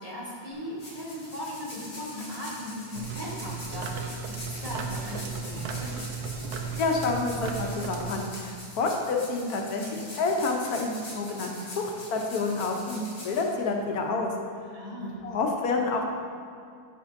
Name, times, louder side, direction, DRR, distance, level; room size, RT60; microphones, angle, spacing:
voice 1, 0.0-5.9 14.7-15.3, left 1 dB, 25° right, -8 dB, 1.3 m, -38 dB
sound 1, 0.5-14.1, left 1 dB, 25° left, 1.2 m, -44 dB
sound 2, 2.9-8.2, right 5 dB, 80° right, 1.1 m, -35 dB
voice 2, 6.8-14.3 15.0-16.0, left 3 dB, 80° left, 1 dB, 1.2 m, -29 dB
9.5 x 5.2 x 2.5 m, 2.4 s
omnidirectional pair, 1.6 m